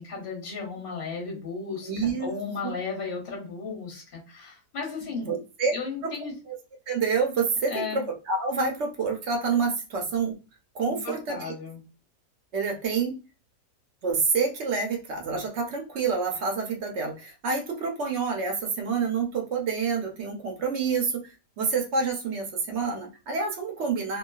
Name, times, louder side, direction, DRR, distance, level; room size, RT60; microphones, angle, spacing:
voice 1, 0.0-5.3 5.7-6.3 7.7-8.0 10.9-11.8, left 4 dB, 35° left, -2 dB, 1.2 m, -35 dB
voice 2, 1.8-2.3 5.3-5.7 6.0-6.1 6.5-6.6 6.9-10.4 10.7-11.5 12.5-13.2 14.0-24.2, right 5 dB, 60° right, 3 dB, 0.7 m, -28 dB
3.0 x 2.2 x 2.3 m, 0.30 s
omnidirectional pair, 1.8 m